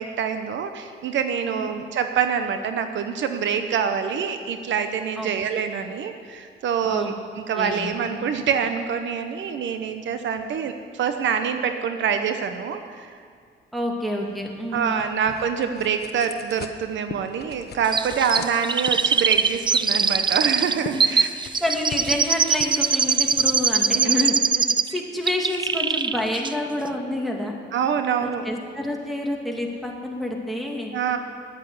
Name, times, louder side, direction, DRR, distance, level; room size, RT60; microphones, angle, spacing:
voice 1, 0.0-13.2 14.7-21.4 23.9-24.3 27.7-28.4 30.9-31.2, right 7 dB, 70° right, 7 dB, 0.9 m, -26 dB
voice 2, 6.8-7.1 7.6-8.2 13.7-15.2 20.8-21.0 21.6-27.5 28.2-31.0, left 1 dB, ahead, 0 dB, 2.2 m, -28 dB
sound 1, 14.2-24.4, left 7 dB, 55° left, 0.9 m, -42 dB
Chirp tweet, 17.9-25.0 25.3-26.2 26.4-26.5, right 5 dB, 25° right, 0.4 m, -22 dB
10.5 x 8.7 x 9.3 m, 2.1 s
cardioid pair, 90°, 20 cm